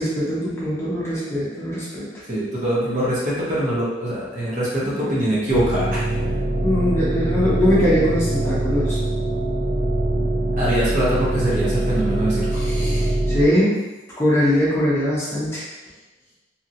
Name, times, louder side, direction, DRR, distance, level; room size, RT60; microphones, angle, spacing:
voice 1, 0.0-2.1 5.0-5.2 6.6-9.0 12.5-13.8 14.2-15.6, equal, 15° left, -8 dB, 0.7 m, -21 dB
voice 2, 2.3-6.0 10.6-12.6, right 1 dB, 45° right, -8 dB, 0.9 m, -23 dB
sound 1, 5.5-13.4, right 1 dB, 85° right, 0.9 m, -23 dB
2.8 x 2.7 x 2.6 m, 1.1 s
head